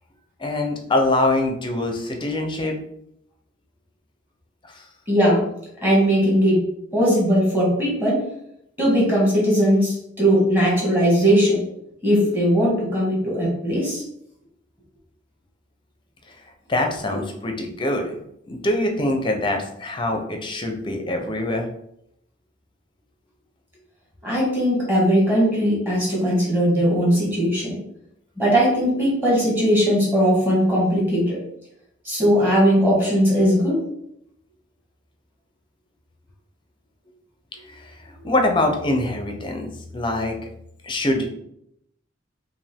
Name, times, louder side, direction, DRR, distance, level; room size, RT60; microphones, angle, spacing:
voice 1, 0.4-2.8 4.7-4.8 16.7-21.7 37.7-37.9 38.2-40.4 40.8-41.3, left 2 dB, 25° left, 3 dB, 0.6 m, -24 dB
voice 2, 5.1-5.4 5.8-6.6 6.9-8.2 8.8-11.6 12.0-14.0 24.2-27.8 28.4-31.4 32.0-33.8, equal, 10° right, -6 dB, 1.7 m, -19 dB
5.1 x 2.6 x 3.5 m, 0.75 s
head